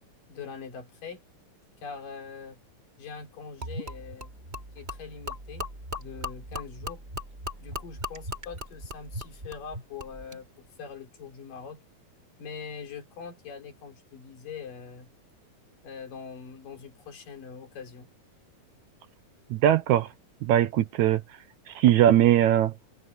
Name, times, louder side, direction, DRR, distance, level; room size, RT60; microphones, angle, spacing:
voice 1, 0.3-1.2 1.8-2.6 3.0-4.3 4.8-5.7 6.0-7.0 7.6-11.8 12.4-15.1 15.8-18.1, left 6 dB, 80° left, 5.3 m, -42 dB
Gurgling / Liquid, 3.6-10.4, left 1 dB, 15° right, 4.7 m, -38 dB
voice 2, 19.5-20.1 20.4-21.2 21.8-22.7, right 12 dB, 70° right, 2.0 m, -20 dB
omnidirectional pair, 3.8 m